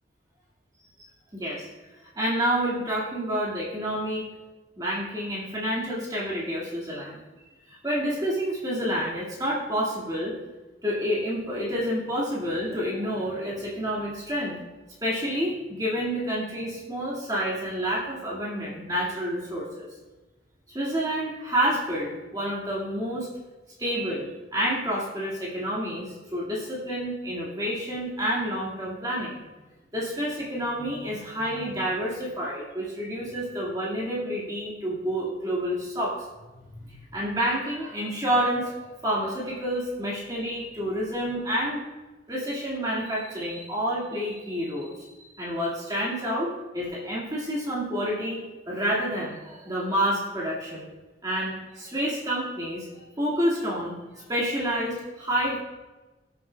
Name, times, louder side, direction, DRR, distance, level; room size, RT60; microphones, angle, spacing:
voice 1, 1.3-1.7 2.2-4.3 4.8-7.2 7.7-10.4 10.8-14.6 15.0-19.9 20.7-23.3 23.8-29.4 29.9-36.2 36.8-38.7 39.0-41.8 42.3-48.4 48.7-50.9 51.2-52.9 53.2-55.6, equal, 20° right, -5 dB, 2.0 m, -29 dB
19.0 x 6.9 x 2.3 m, 1.1 s
head